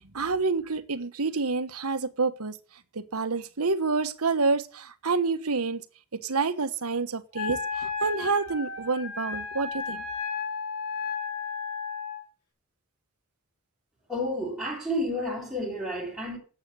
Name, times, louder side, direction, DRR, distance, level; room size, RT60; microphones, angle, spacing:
voice 1, 0.1-2.5 3.1-5.8 6.2-10.0, right 4 dB, 80° right, 1.2 m, -28 dB
Wind instrument woodwind instrument, 7.3-12.2, left 5 dB, 90° left, 4.0 m, -33 dB
voice 2, 14.1-16.4, left 1 dB, ahead, 4.4 m, -30 dB
11.5 x 8.1 x 7.9 m
head